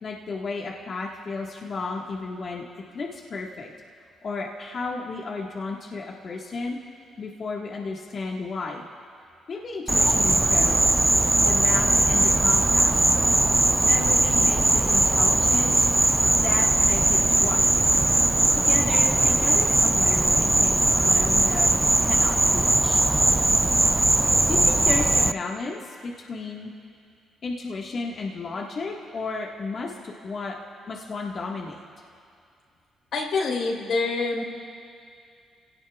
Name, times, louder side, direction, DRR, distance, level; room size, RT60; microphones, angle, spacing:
voice 1, 0.0-3.7 4.2-6.8 7.2-8.8 9.5-10.9 11.4-13.2 13.8-15.9 16.3-17.7 18.5-21.7 22.0-23.0 24.5-26.7 27.4-30.5 30.8-31.8, left 3 dB, 55° left, -2 dB, 1.6 m, -33 dB
Insect, 9.9-25.3, right 2 dB, 15° right, 0.4 m, -20 dB
voice 2, 33.1-34.4, left 3 dB, 75° left, 0 dB, 4.1 m, -26 dB
26.5 x 17.5 x 2.4 m, 2.3 s
supercardioid pair, 60°, 0 cm